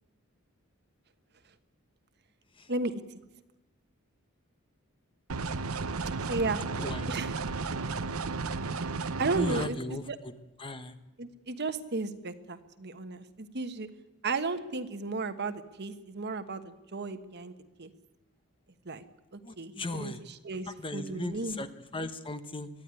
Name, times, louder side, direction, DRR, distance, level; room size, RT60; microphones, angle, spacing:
voice 1, 2.7-3.2 6.3-6.6 7.1-7.3 9.2-10.2 11.2-13.9 14.2-17.9 18.8-19.0 19.3-21.6, right 3 dB, 50° right, 9 dB, 1.3 m, -34 dB
sound 1, 5.3-9.7, right 4 dB, 80° right, 0.9 m, -33 dB
voice 2, 9.4-10.0 10.6-10.9 19.4-20.2 20.7-21.7 21.9-22.7, left 2 dB, 25° left, 10 dB, 1.1 m, -36 dB
23.0 x 14.0 x 9.8 m, 1.0 s
head